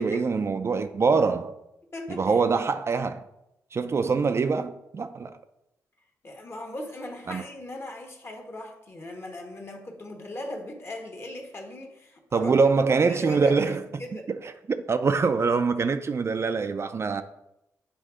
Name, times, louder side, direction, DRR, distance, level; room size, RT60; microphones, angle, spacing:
voice 1, 0.0-1.5 2.1-3.2 3.7-5.3 7.3-7.4 12.3-13.8 14.3-17.2, right 4 dB, 40° right, 0.4 m, -24 dB
voice 2, 1.9-2.4 6.2-12.5 13.1-14.3, left 1 dB, 40° left, 1.3 m, -38 dB
7.6 x 2.6 x 4.9 m
cardioid pair, 65°, 7 cm